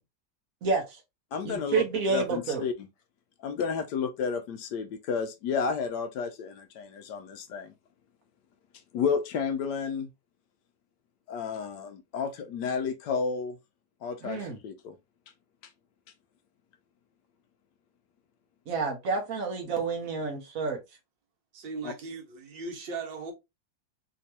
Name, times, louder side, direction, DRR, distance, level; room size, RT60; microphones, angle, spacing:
voice 1, 0.6-1.0 1.4-2.6 14.2-14.6 18.7-20.8, right 4 dB, 55° right, 1.2 m, -29 dB
voice 2, 1.3-2.7 3.4-7.7 8.9-10.1 11.3-13.6 14.0-15.0 21.8-21.9, left 6 dB, 75° left, 1.1 m, -31 dB
voice 3, 21.5-23.3, right 4 dB, 75° right, 1.8 m, -38 dB
3.5 x 3.0 x 2.9 m
omnidirectional pair, 2.0 m